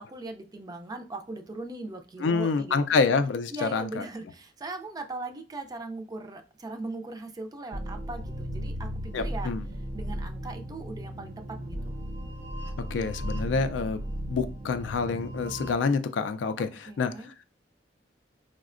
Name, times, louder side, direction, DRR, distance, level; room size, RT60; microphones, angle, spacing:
voice 1, 0.0-3.1 3.5-8.9 9.1-9.5 9.9-11.9 16.6-17.3, right 2 dB, 20° right, 6 dB, 0.4 m, -39 dB
voice 2, 2.2-4.0 9.1-9.7 12.9-17.3, left 4 dB, 80° left, 10 dB, 0.3 m, -27 dB
sound 1, 7.7-15.7, equal, 85° right, 0.9 m, -35 dB
4.8 x 2.1 x 2.4 m, 0.33 s
head